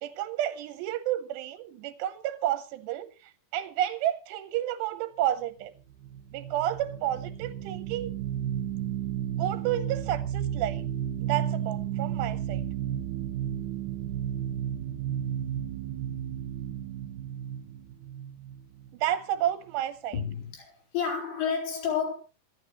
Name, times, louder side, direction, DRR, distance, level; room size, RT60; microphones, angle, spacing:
voice 1, 0.0-5.7 6.3-8.2 9.4-10.9 11.2-12.7 18.9-20.1, right 12 dB, 90° right, 3.1 m, -31 dB
sound 1, 5.9-19.1, right 10 dB, 65° right, 2.2 m, -33 dB
voice 2, 20.1-22.1, left 6 dB, 70° left, 6.2 m, -30 dB
26.0 x 11.0 x 3.1 m
omnidirectional pair, 4.9 m